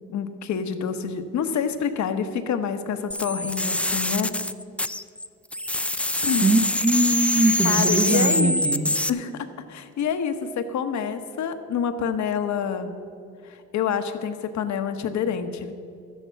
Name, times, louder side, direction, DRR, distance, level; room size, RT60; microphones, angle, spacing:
voice 1, 0.1-4.3 6.2-6.4 7.6-9.3 9.7-12.9 13.4-15.7, left 7 dB, 70° left, 9 dB, 1.1 m, -27 dB
sound 1, 3.1-5.3 5.5-9.1, left 1 dB, 5° left, 0.3 m, -25 dB
voice 2, 6.4-8.9, right 2 dB, 20° right, 7 dB, 0.9 m, -22 dB
12.5 x 9.8 x 5.7 m, 2.5 s
cardioid pair, 90°, 30 cm